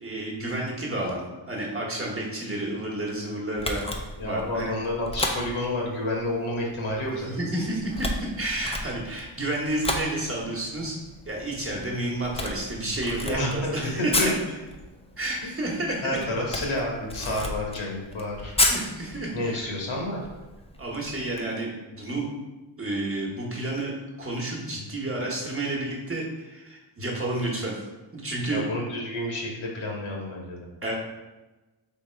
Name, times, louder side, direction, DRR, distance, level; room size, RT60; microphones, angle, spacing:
voice 1, 0.0-1.2 1.5-3.8 4.2-4.7 7.2-8.1 8.4-11.0 11.3-14.3 15.2-16.1 18.7-19.7 20.8-22.3 22.8-27.8 28.1-28.7 30.8-30.9, right 1 dB, 25° right, -3 dB, 1.2 m, -30 dB
Camera, 3.6-21.4, left 1 dB, 15° left, 0.5 m, -33 dB
voice 2, 4.2-7.3 13.2-14.3 15.4-15.5 16.0-18.5 19.3-20.2 28.5-30.7, left 1 dB, 70° left, -1 dB, 1.4 m, -30 dB
3.5 x 2.9 x 4.4 m, 1.1 s
cardioid pair, 70°, 50 cm